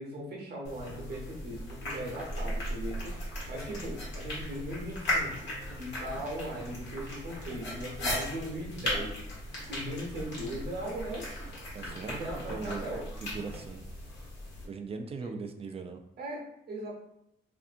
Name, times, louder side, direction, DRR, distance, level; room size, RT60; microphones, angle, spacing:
voice 1, 0.0-3.2 3.5-5.4 5.8-9.2 9.7-11.3 12.1-13.0 15.2-15.3 16.2-16.9, right 1 dB, 55° right, -1 dB, 0.8 m, -38 dB
sound 1, 0.6-14.6, left 1 dB, 65° left, 1.2 m, -37 dB
voice 2, 11.7-12.9 13.2-13.8 14.6-16.0, right 4 dB, 30° right, 6 dB, 0.3 m, -39 dB
2.6 x 2.5 x 2.5 m, 0.81 s
cardioid pair, 90°, 20 cm